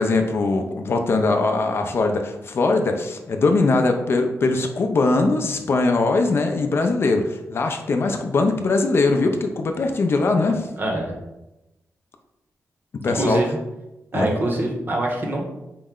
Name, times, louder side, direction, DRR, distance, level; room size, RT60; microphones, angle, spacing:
voice 1, 0.0-10.7 13.0-13.4 14.1-14.3, left 3 dB, 50° left, 5 dB, 0.4 m, -21 dB
voice 2, 10.8-11.1 13.1-13.5 14.1-15.6, right 1 dB, 40° right, 0 dB, 0.8 m, -24 dB
4.5 x 2.1 x 3.6 m, 0.95 s
wide cardioid pair, 125°, 5 cm